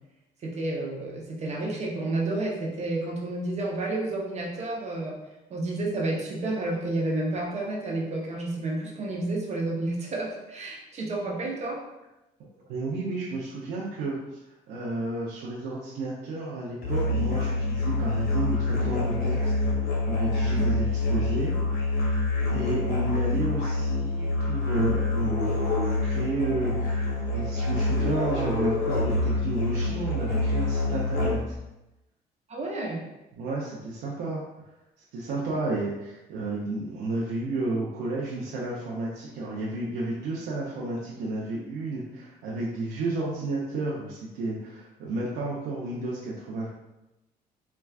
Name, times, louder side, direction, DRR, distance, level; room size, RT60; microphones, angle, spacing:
voice 1, 0.4-5.2 5.5-11.8 20.5-20.6 32.5-33.0, right 2 dB, 40° right, -2 dB, 0.7 m, -30 dB
voice 2, 12.7-14.2 14.7-19.5 20.1-21.5 22.5-25.6 26.0-27.0 27.3-31.5 33.3-34.4 35.1-46.7, right 2 dB, 80° right, -5 dB, 0.6 m, -31 dB
Musical instrument, 16.8-31.6, left 2 dB, 65° left, 1.2 m, -26 dB
4.3 x 2.3 x 2.3 m, 0.96 s
cardioid pair, 110°, 17 cm